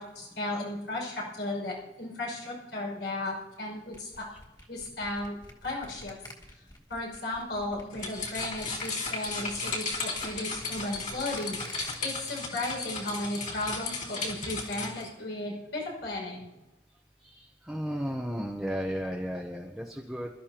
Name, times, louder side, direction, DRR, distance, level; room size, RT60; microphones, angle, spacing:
voice 1, 0.0-4.3 4.7-5.4 5.6-6.1 6.9-16.5, left 2 dB, 90° left, -3 dB, 6.0 m, -35 dB
sound 1, 3.9-11.9, left 1 dB, 25° left, 2.3 m, -49 dB
sound 2, 7.9-15.1, left 3 dB, 50° left, 3.3 m, -35 dB
voice 2, 17.2-20.3, equal, ahead, -2 dB, 0.9 m, -34 dB
27.0 x 13.0 x 2.9 m, 1.0 s
head